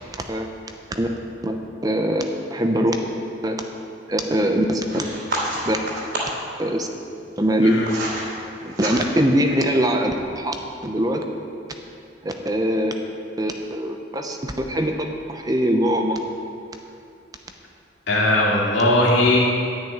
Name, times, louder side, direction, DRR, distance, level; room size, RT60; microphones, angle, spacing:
voice 1, 1.4-2.2 2.5-2.9 3.4-3.6 4.1-5.0 5.7-5.8 6.6-6.9 7.4-7.7 8.6-10.6 10.8-11.2 12.2-12.9 13.4-16.2, right 1 dB, 20° right, 4 dB, 0.7 m, -22 dB
sound 1, 4.9-6.5 7.3-8.3 8.6-9.3, right 1 dB, 55° right, 2.9 m, -29 dB
voice 2, 18.1-19.4, left 1 dB, 75° left, -3 dB, 2.5 m, -18 dB
10.5 x 6.2 x 9.0 m, 2.5 s
head